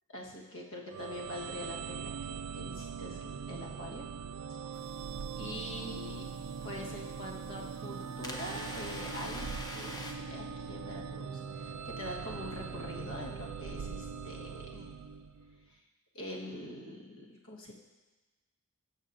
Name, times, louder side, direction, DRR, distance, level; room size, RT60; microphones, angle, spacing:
voice 1, 0.1-4.1 4.5-4.6 5.4-6.3 6.6-9.9 10.3-14.9 15.7-15.8 16.1-17.7, left 1 dB, 60° left, -2 dB, 1.5 m, -44 dB
sound 1, 0.9-15.6, right 6 dB, 90° right, 0.4 m, -41 dB
sound 2, 4.7-10.1, left 1 dB, 15° left, 0.7 m, -47 dB
16.5 x 6.4 x 2.6 m, 1.2 s
head